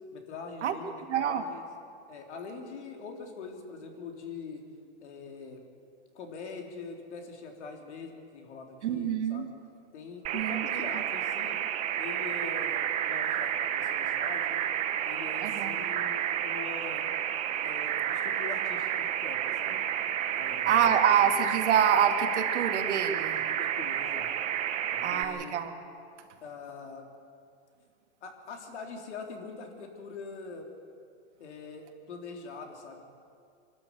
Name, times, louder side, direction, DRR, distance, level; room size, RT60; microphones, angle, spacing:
voice 1, 0.1-1.6 2.1-4.6 5.0-5.6 6.2-9.4 9.9-11.6 12.0-14.6 15.0-17.1 17.6-19.8 20.3-21.0 23.3-24.3 24.9-25.5 26.4-27.1 28.2-30.7 31.4-33.0, left 4 dB, 70° left, 3 dB, 3.7 m, -43 dB
voice 2, 1.1-1.4 8.8-9.5 10.3-11.0 15.4-15.7 20.5-23.4 25.0-25.7, right 8 dB, 75° right, 5 dB, 2.2 m, -26 dB
sound 1, 10.2-25.2, right 10 dB, 20° right, 0.7 m, -31 dB
25.0 x 12.5 x 8.6 m, 2.3 s
supercardioid pair, 160°, 35 cm